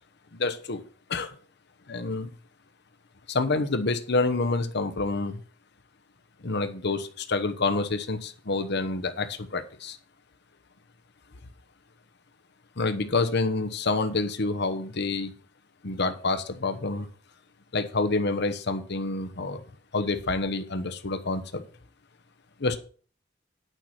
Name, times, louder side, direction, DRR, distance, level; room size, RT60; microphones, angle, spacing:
voice 1, 0.3-0.8 1.1-1.3 1.9-2.3 3.3-5.4 6.4-10.0 12.8-15.3 15.8-17.1 17.7-19.6 19.9-21.6 22.6-22.8, left 3 dB, 60° left, 8 dB, 1.0 m, -28 dB
9.2 x 5.9 x 6.0 m, 0.41 s
head